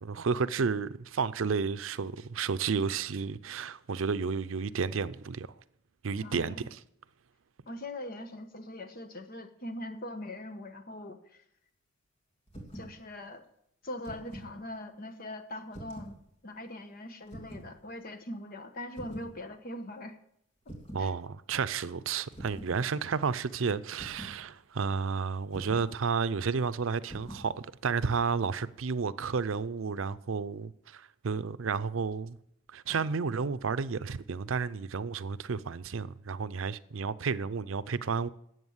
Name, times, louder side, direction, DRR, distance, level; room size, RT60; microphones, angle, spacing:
voice 1, 0.0-5.5 6.0-6.6 20.9-27.5 27.8-32.4 32.7-38.3, right 5 dB, 90° right, 0.6 m, -31 dB
voice 2, 6.2-6.7 7.7-11.4 12.7-13.4 13.8-16.1 16.4-20.2 21.0-21.1, left 1 dB, 50° left, 1.2 m, -41 dB
sound 1, 12.5-12.9 13.8-14.5 15.7-16.2 17.3-17.7 19.0-19.3 20.7-21.1 22.3-22.8 24.0-24.4 25.5-25.9 27.1-27.5, right 1 dB, 30° left, 2.9 m, -44 dB
12.5 x 8.0 x 8.0 m
head